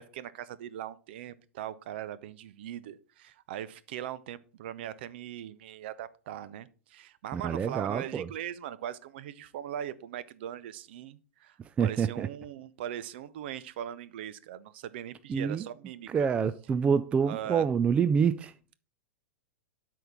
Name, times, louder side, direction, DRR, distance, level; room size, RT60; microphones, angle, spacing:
voice 1, 0.0-16.1 17.3-17.7, right 11 dB, 50° right, 0.7 m, -40 dB
voice 2, 7.3-8.3 11.8-12.3 15.3-15.7 16.1-18.5, right 6 dB, 15° right, 0.3 m, -27 dB
12.0 x 4.6 x 3.6 m
figure-of-eight pair, 95°, 7 cm